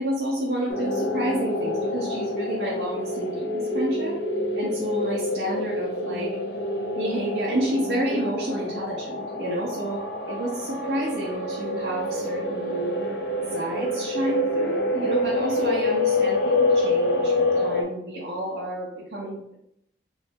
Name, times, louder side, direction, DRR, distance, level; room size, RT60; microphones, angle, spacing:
voice 1, 0.0-4.2 4.6-6.3 7.0-13.0 13.5-19.5, right 1 dB, 60° right, -4 dB, 0.7 m, -30 dB
sound 1, 0.7-17.8, left 1 dB, 65° left, 0.6 m, -27 dB
3.1 x 2.6 x 3.5 m, 0.75 s
head